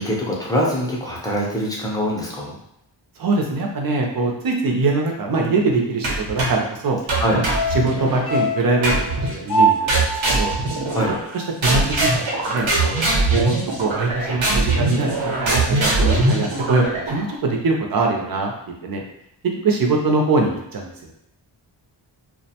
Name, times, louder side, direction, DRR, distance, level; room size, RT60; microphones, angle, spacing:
voice 1, 0.0-2.6 7.2-7.4 10.9-11.1, equal, 10° left, -5 dB, 0.5 m, -23 dB
voice 2, 3.2-7.0 7.3-7.4 7.8-10.5 11.3-18.5 18.8-19.0 19.6-21.1, right 3 dB, 50° right, 1 dB, 0.5 m, -23 dB
sound 1, 6.0-6.7 7.1-8.3 8.8-9.4 9.9-11.3 11.6-17.3, right 2 dB, 85° right, 0.9 m, -21 dB
sound 2, 7.5-11.9 12.2-12.3, right 2 dB, 60° left, 0.5 m, -24 dB
2.4 x 2.1 x 2.8 m, 0.80 s
wide cardioid pair, 155°, 45 cm